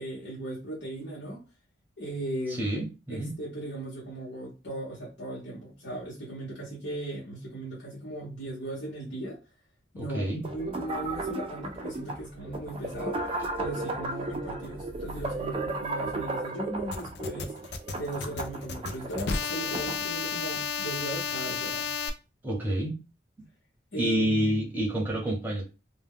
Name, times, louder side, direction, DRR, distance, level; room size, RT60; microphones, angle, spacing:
voice 1, 0.0-1.4 2.0-2.7 3.1-9.4 9.9-13.3 13.6-17.6 17.9-22.0 23.9-24.6, right 1 dB, 75° left, 0.9 m, -37 dB
voice 2, 2.5-3.3 10.0-10.4 22.4-23.0 24.0-25.6, right 1 dB, 10° right, 0.7 m, -28 dB
sound 1, 10.4-20.0, right 2 dB, 30° right, 0.3 m, -35 dB
sound 2, 16.9-22.1, left 5 dB, 60° left, 0.3 m, -32 dB
2.1 x 2.1 x 3.5 m
head